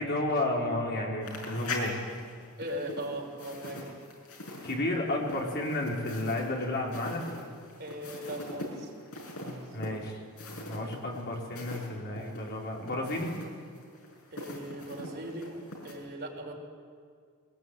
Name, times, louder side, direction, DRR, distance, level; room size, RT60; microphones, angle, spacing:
voice 1, 0.0-2.0 4.6-7.2 9.7-10.2 10.7-13.3, left 1 dB, 50° left, -1 dB, 4.7 m, -32 dB
sound 1, 1.2-11.9 12.2-15.9, left 2 dB, 75° left, 6.2 m, -42 dB
voice 2, 2.6-3.9 7.8-8.9 9.4-9.6 14.3-15.5 15.8-16.5, right 1 dB, 50° right, -2 dB, 5.9 m, -39 dB
21.5 x 20.5 x 9.5 m, 2.1 s
head